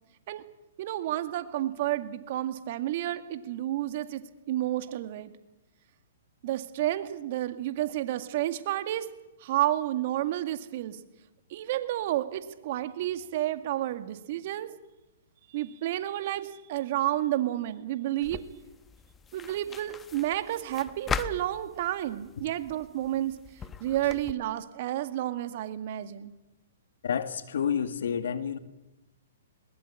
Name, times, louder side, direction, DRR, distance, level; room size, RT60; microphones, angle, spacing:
voice 1, 0.8-4.2 4.5-5.3 6.4-9.1 9.4-11.0 11.5-14.7 15.5-18.4 19.3-23.3 23.8-26.3, right 13 dB, 50° right, 2.1 m, -30 dB
sound 1, 18.2-24.3, left 6 dB, 15° left, 1.1 m, -40 dB
voice 2, 27.0-28.6, left 7 dB, 70° left, 2.0 m, -29 dB
21.0 x 20.5 x 8.6 m
hypercardioid pair, 125°, 0 cm